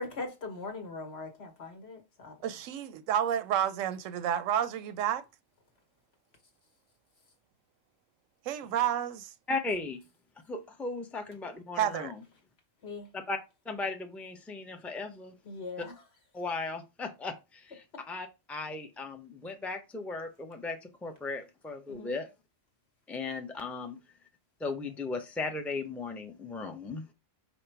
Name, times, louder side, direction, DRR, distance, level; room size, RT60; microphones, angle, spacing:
voice 1, 0.0-2.4 12.8-13.1 15.4-15.9 17.9-18.0 21.9-22.2, left 3 dB, 60° left, 1.4 m, -40 dB
voice 2, 2.4-5.2 8.5-9.3 11.8-12.1, right 10 dB, 90° right, 0.9 m, -30 dB
voice 3, 9.5-10.0 10.5-12.2 13.3-13.4 13.7-15.3 16.3-22.3 23.1-24.0 24.6-27.0, left 3 dB, ahead, 0.4 m, -37 dB
5.3 x 2.1 x 4.5 m
omnidirectional pair, 1.3 m